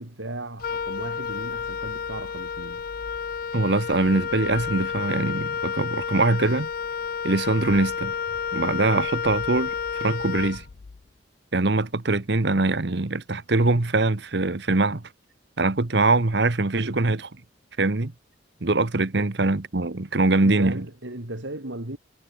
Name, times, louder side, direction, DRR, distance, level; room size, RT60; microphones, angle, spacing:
voice 1, 0.0-2.9 19.1-19.3 20.4-22.0, right 1 dB, 75° right, 3.3 m, -36 dB
Wind instrument woodwind instrument, 0.6-11.0, left 6 dB, 50° left, 0.4 m, -31 dB
voice 2, 3.5-6.7 7.2-8.1 8.5-9.7 10.0-10.6 11.5-15.0 15.6-17.3 17.8-18.1 18.6-20.8, right 2 dB, 60° right, 1.1 m, -23 dB
head